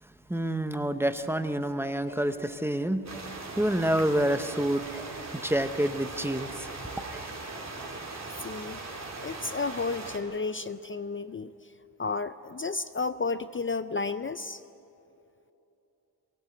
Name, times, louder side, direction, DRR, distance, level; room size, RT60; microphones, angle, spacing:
voice 1, 0.0-6.7 7.1-7.2, right 1 dB, 5° right, 9 dB, 0.7 m, -28 dB
sound 1, 3.1-10.2, right 3 dB, 45° right, 2.6 m, -40 dB
voice 2, 8.4-8.8 9.2-11.5 12.0-14.6, left 4 dB, 35° left, 12 dB, 0.4 m, -32 dB
23.0 x 19.0 x 7.7 m, 2.9 s
wide cardioid pair, 180°, 39 cm